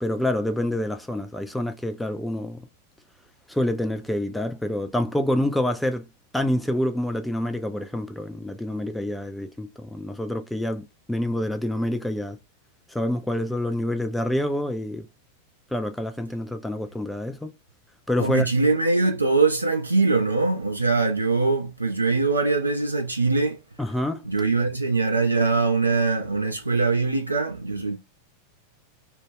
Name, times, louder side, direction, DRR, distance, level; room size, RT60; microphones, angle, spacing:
voice 1, 0.0-2.6 3.5-6.0 6.3-12.4 12.9-15.1 15.7-17.5 18.1-18.5 23.8-24.2, left 1 dB, 5° left, 0.3 m, -27 dB
voice 2, 18.2-23.6 24.2-28.0, right 3 dB, 80° right, 0.4 m, -22 dB
2.2 x 2.1 x 3.3 m
figure-of-eight pair, 90°, 0 cm